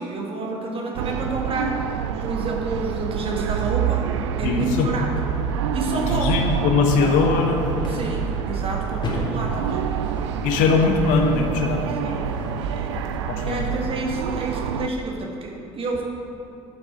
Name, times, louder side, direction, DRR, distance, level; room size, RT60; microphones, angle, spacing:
voice 1, 0.0-1.8 2.2-4.1 4.4-5.1 5.7-6.4 7.9-10.0 12.0-12.3 12.7-12.9 13.4-16.0, right 2 dB, 40° right, 0 dB, 1.7 m, -29 dB
sound 1, 1.0-14.9, right 8 dB, 70° right, 0.4 m, -27 dB
voice 2, 4.4-4.9 5.9-7.7 10.4-11.8 13.1-13.6, left 5 dB, 60° left, 3 dB, 1.0 m, -21 dB
sound 2, 7.2-13.2, left 2 dB, 30° left, 2.0 m, -35 dB
10.5 x 7.2 x 4.7 m, 2.7 s
figure-of-eight pair, 55°, 15 cm